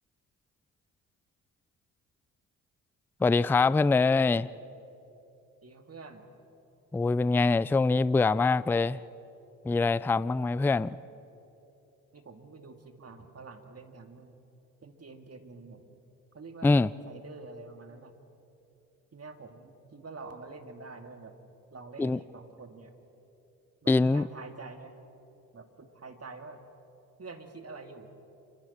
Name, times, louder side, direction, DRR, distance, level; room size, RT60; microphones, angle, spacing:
voice 1, 3.2-4.5 6.9-9.0 9.6-11.0 16.6-16.9 22.0-22.2 23.9-24.3, left 3 dB, 5° left, 19 dB, 0.4 m, -24 dB
voice 2, 5.6-6.3 12.1-14.4 14.8-16.0 16.3-18.1 19.1-21.3 21.7-22.9 23.8-25.0 25.5-26.6 27.2-28.1, right 3 dB, 35° right, 5 dB, 2.5 m, -47 dB
29.0 x 26.0 x 4.3 m, 2.9 s
hypercardioid pair, 45°, 41 cm